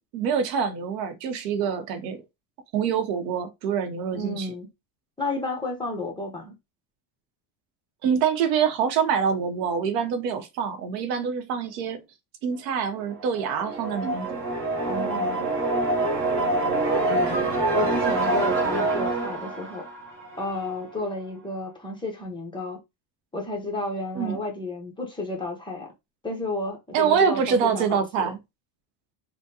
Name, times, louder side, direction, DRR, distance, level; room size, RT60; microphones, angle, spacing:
voice 1, 0.1-2.2 2.7-4.5 8.0-12.0 12.4-14.4 24.1-24.4 26.9-28.4, right 7 dB, 80° right, 0.8 m, -25 dB
voice 2, 4.1-4.7 5.2-6.5 14.8-15.5 17.1-19.9 20.4-22.8 23.3-25.9 26.2-28.3, left 2 dB, 10° left, 0.8 m, -32 dB
sound 1, 13.1-20.9, right 2 dB, 25° right, 0.8 m, -26 dB
3.5 x 2.2 x 2.7 m
cardioid pair, 135°, 48 cm